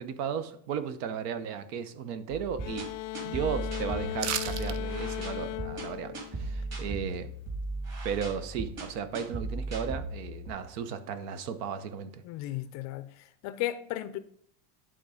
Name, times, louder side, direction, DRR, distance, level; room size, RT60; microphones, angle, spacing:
voice 1, 0.0-2.9 3.2-7.3 8.0-12.2, right 7 dB, 80° right, 11 dB, 1.0 m, -35 dB
sound 1, 2.3-10.5, right 2 dB, 30° right, 2.7 m, -37 dB
sound 2, 2.6-7.1, left 18 dB, 85° left, 0.6 m, -38 dB
sound 3, 4.2-4.8 5.1-5.2, right 10 dB, 55° right, 0.7 m, -32 dB
voice 2, 12.2-14.2, left 14 dB, 40° left, 13 dB, 0.4 m, -35 dB
11.0 x 3.7 x 5.0 m, 0.65 s
cardioid pair, 150°, 46 cm